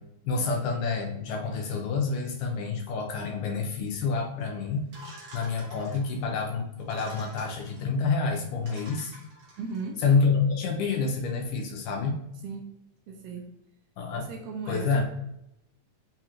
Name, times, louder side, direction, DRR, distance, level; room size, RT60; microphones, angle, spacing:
voice 1, 0.2-4.9 5.3-9.1 10.0-12.2 14.0-14.3 14.7-15.1, left 4 dB, 80° left, 1 dB, 2.2 m, -28 dB
sound 1, 4.9-6.2 6.8-7.8 8.3-8.4 8.6-9.9, right 1 dB, 60° right, 1.5 m, -48 dB
voice 2, 9.6-10.0 12.4-12.7 13.1-13.5 14.1-15.1, right 4 dB, 80° right, 2 dB, 2.0 m, -37 dB
5.6 x 2.9 x 2.4 m, 0.83 s
omnidirectional pair, 3.8 m